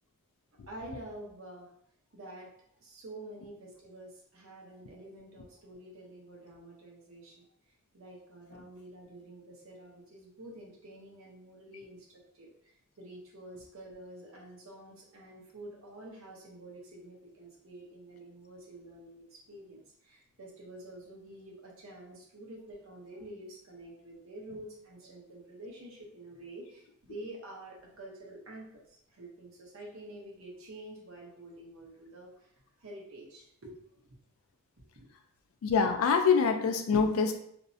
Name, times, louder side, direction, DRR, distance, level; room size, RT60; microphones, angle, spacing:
voice 1, 0.7-1.7 2.1-2.5 2.8-32.5 32.8-33.8 34.9-35.1, right 1 dB, 65° right, -2 dB, 0.7 m, -48 dB
voice 2, 35.6-37.3, left 5 dB, 70° left, 7 dB, 0.3 m, -25 dB
2.5 x 2.0 x 2.6 m, 0.69 s
head